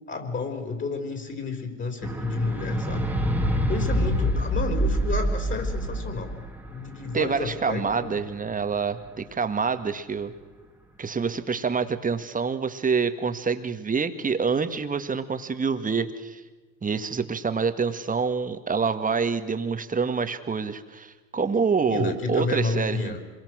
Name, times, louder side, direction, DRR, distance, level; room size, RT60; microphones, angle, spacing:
voice 1, 0.1-3.1 3.7-6.3 6.7-8.2 21.3-21.4 21.9-23.2, left 3 dB, 30° left, 6 dB, 4.5 m, -31 dB
sound 1, 2.0-8.5 9.3-9.4, equal, 5° right, 2.2 m, -26 dB
voice 2, 7.1-10.3 11.0-16.4 16.8-23.2, right 5 dB, 20° right, 9 dB, 1.8 m, -26 dB
26.5 x 23.0 x 6.3 m, 1.2 s
hypercardioid pair, 90°, 40 cm